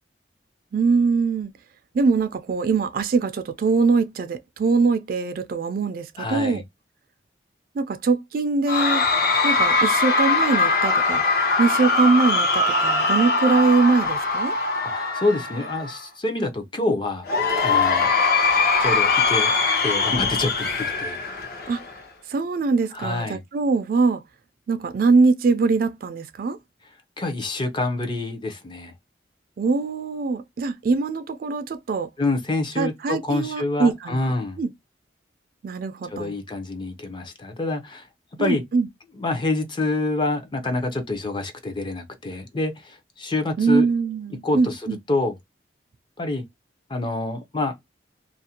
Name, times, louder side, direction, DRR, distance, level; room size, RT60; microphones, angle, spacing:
voice 1, 0.7-1.5 1.9-6.6 7.7-9.0 9.4-11.2 11.6-14.5 21.7-21.8 22.3-24.2 24.7-26.6 29.6-32.1 32.8-34.2 34.6-34.7 35.6-36.4 38.4-38.9 43.6-45.0, right 4 dB, 50° right, 0.3 m, -22 dB
voice 2, 6.2-6.6 14.8-17.3 17.6-18.1 18.8-19.5 19.8-20.7 21.0-21.2 22.9-23.4 27.2-28.9 32.2-34.6 36.1-38.1 38.4-38.6 39.2-43.9 44.4-44.8 45.1-45.3 46.2-46.4 46.9-47.7, left 2 dB, 25° left, 0.5 m, -27 dB
Cheering / Crowd, 8.7-16.0 17.2-22.0, left 3 dB, 55° left, 0.8 m, -21 dB
2.5 x 2.0 x 2.7 m
head